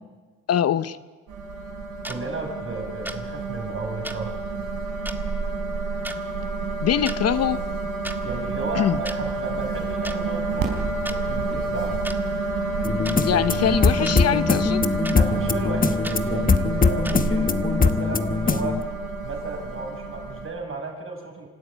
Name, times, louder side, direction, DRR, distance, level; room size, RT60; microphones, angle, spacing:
voice 1, 0.5-1.0 6.8-7.6 8.8-9.0 13.2-14.8, left 9 dB, 55° left, 15 dB, 0.8 m, -23 dB
sound 1, 1.3-20.5, right 3 dB, 80° right, 4.7 m, -29 dB
sound 2, 2.0-2.2 3.1-3.2 4.0-4.2 5.1-5.2 6.0-6.2 6.9-7.2 8.0-8.2 9.1-9.2 10.0-10.2 11.1-11.2 12.0-12.2 13.0-13.2 14.0-14.2 15.0-15.2 16.0-16.2 17.0-17.2, right 1 dB, 5° right, 1.7 m, -34 dB
voice 2, 2.0-4.3 8.2-12.0 15.1-18.9 19.2-21.5, right 3 dB, 45° right, 2 dB, 7.0 m, -34 dB
sound 3, 12.8-18.8, left 4 dB, 30° left, 1.2 m, -22 dB
26.0 x 13.5 x 10.0 m, 1.3 s
cardioid pair, 90°, 30 cm